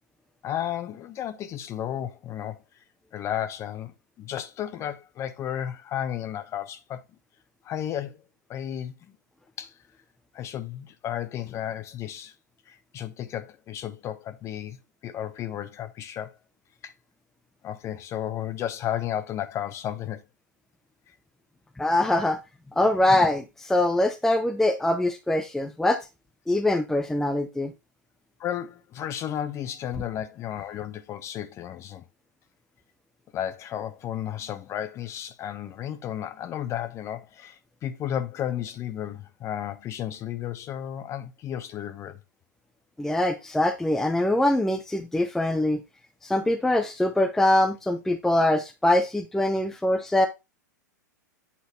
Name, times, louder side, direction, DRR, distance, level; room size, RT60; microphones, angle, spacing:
voice 1, 0.4-2.6 3.1-7.0 7.6-8.2 8.5-8.9 9.6-9.7 10.3-12.3 12.7-16.3 16.8-16.9 17.6-20.2 28.4-32.0 33.3-42.2, left 10 dB, 30° left, 0.9 m, -33 dB
voice 2, 21.8-22.4 22.8-26.0 26.5-27.7 43.0-45.8 46.2-50.3, left 1 dB, 5° left, 0.6 m, -23 dB
8.4 x 4.0 x 3.2 m
figure-of-eight pair, 105°, 10 cm